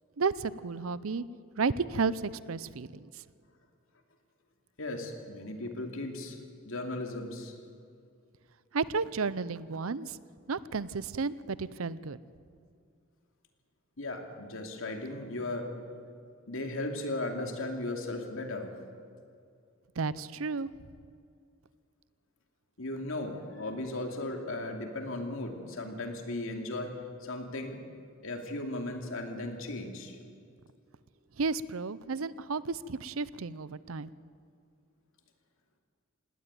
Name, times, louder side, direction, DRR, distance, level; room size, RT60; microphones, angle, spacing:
voice 1, 0.2-1.2 1.6-3.1 8.7-10.2 10.5-12.2 20.0-20.7 31.4-34.1, right 4 dB, 75° right, 18 dB, 0.6 m, -32 dB
voice 2, 4.8-6.4 6.6-7.6 14.0-15.7 16.5-18.7 22.8-26.9 27.2-27.8 28.2-30.2, left 2 dB, 70° left, 4 dB, 2.7 m, -36 dB
18.5 x 18.0 x 9.5 m, 2.3 s
head